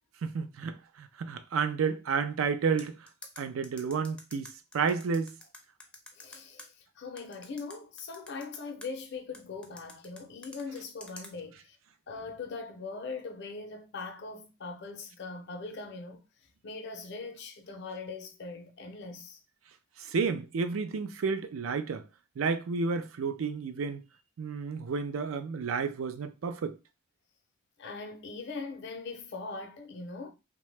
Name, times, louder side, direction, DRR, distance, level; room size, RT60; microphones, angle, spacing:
voice 1, 0.2-3.0 3.4-5.3 20.0-22.1 22.4-24.0 24.4-26.8, right 5 dB, 90° right, 0.4 m, -31 dB
sound 1, 2.8-6.7 7.2-8.9 9.3-11.3, left 1 dB, 5° left, 0.4 m, -48 dB
voice 2, 6.1-11.8 12.1-16.2 16.6-19.4 27.8-30.3, left 4 dB, 60° left, 0.6 m, -41 dB
2.8 x 2.2 x 3.2 m
head